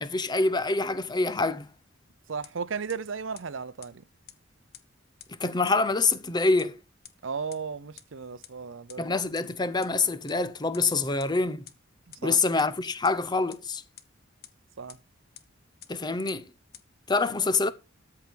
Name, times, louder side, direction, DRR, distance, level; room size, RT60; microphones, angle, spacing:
voice 1, 0.0-1.7 5.4-6.8 9.0-11.7 12.2-13.8 15.9-16.5 17.1-17.7, left 3 dB, 20° left, 0.7 m, -26 dB
voice 2, 2.3-4.0 7.2-9.2 12.1-12.4 14.8-15.0, right 5 dB, 70° right, 0.6 m, -35 dB
sound 1, 2.4-2.5 2.9-3.0 3.3-3.4 3.8-3.9 4.3-4.4 4.7-4.8 5.2-5.3 5.7-5.8 6.1-6.2 6.6-6.7 7.0-7.1 7.5-7.6 8.0-8.1 8.4-8.5 8.9-9.0 9.3-9.4 9.8-9.9 10.3-10.4 10.7-10.8 11.2-11.3 11.7-11.8 12.1-12.2 12.6-12.7 13.0-13.1 13.5-13.6 14.0-14.1 14.4-14.5 14.9-15.0 15.3-15.4 15.8-15.9 16.3-16.4 16.7-16.8, left 11 dB, 50° left, 0.9 m, -46 dB
13.0 x 4.8 x 4.6 m
head